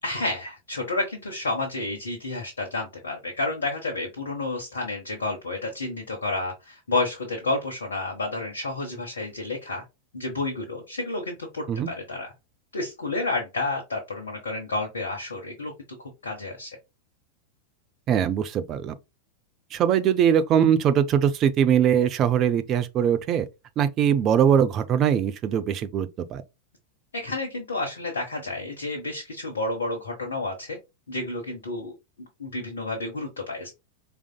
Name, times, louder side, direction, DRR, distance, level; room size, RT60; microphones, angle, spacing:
voice 1, 0.0-9.8 10.1-12.3 12.7-15.7 16.2-16.7 27.1-30.8 31.1-33.7, left 2 dB, 70° left, 1.0 m, -30 dB
voice 2, 18.1-18.9 19.7-23.5 23.8-26.4, right 8 dB, 35° right, 0.6 m, -21 dB
4.8 x 3.5 x 2.3 m
figure-of-eight pair, 90°, 0 cm